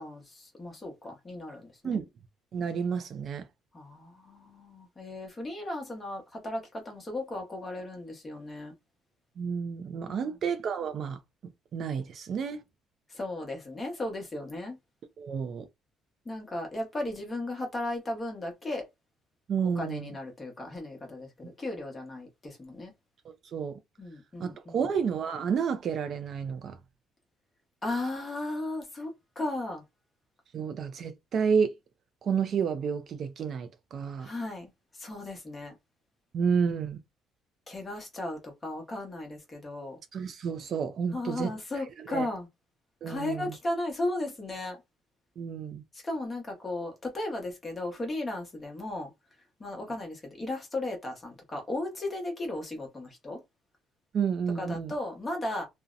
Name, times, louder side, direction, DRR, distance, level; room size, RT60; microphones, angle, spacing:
voice 1, 0.0-2.0 3.7-8.7 10.1-10.4 13.1-14.8 16.2-18.8 19.6-22.9 24.0-24.9 27.8-29.8 34.2-35.7 37.7-40.0 41.1-42.5 43.1-44.8 45.9-49.1 49.6-53.4 54.5-55.7, left 2 dB, 20° left, 0.9 m, -36 dB
voice 2, 2.5-3.5 9.4-11.2 11.7-12.6 15.2-15.7 19.5-20.1 23.5-23.8 24.4-26.8 30.5-31.7 32.2-34.3 36.3-37.0 40.1-41.5 42.1-42.3 43.0-43.5 45.4-45.8 54.1-54.9, right 6 dB, 45° right, 0.3 m, -30 dB
2.6 x 2.0 x 2.4 m
cardioid pair, 155°, 0 cm